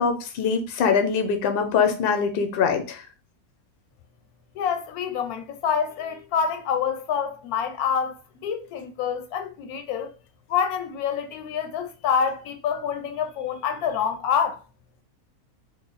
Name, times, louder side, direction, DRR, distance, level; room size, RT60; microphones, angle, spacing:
voice 1, 0.0-3.0, left 6 dB, 60° left, 0.6 m, -23 dB
voice 2, 4.5-10.1 10.5-14.6, left 7 dB, 85° left, 1.1 m, -27 dB
3.1 x 2.0 x 3.9 m
omnidirectional pair, 1.5 m